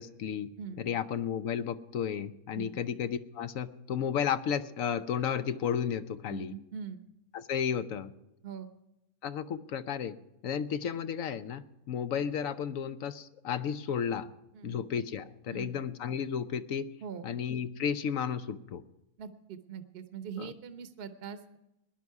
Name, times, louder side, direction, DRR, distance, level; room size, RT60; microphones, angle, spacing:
voice 1, 0.0-0.5 0.8-6.5 7.3-8.1 9.2-10.2 10.4-14.3 14.6-16.9 17.2-18.8 20.4-20.5, left 8 dB, 65° left, 13 dB, 1.0 m, -33 dB
voice 2, 0.6-0.9 2.5-2.8 6.3-7.0 8.4-8.7 14.5-14.8 15.5-15.8 17.0-17.3 19.2-21.6, right 7 dB, 45° right, 9 dB, 1.0 m, -42 dB
19.0 x 11.0 x 4.7 m, 0.92 s
omnidirectional pair, 1.6 m